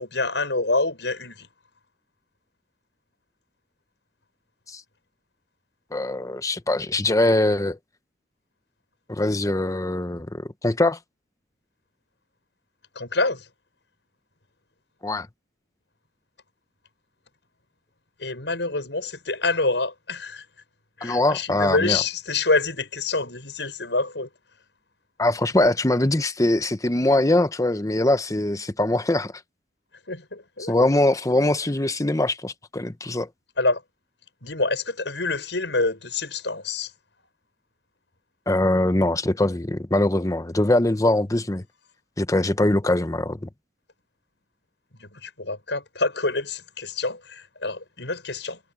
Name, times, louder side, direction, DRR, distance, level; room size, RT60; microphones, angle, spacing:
voice 1, 0.0-1.5 12.9-13.5 18.2-20.4 21.0-24.3 30.1-30.7 33.6-33.8 34.4-36.9 45.0-48.6, left 3 dB, 80° left, 6.7 m, -26 dB
voice 2, 5.9-7.8 9.1-11.0 15.0-15.3 21.0-22.0 25.2-29.3 30.6-33.3 38.5-41.6 42.2-43.5, left 1 dB, 20° left, 0.9 m, -22 dB
head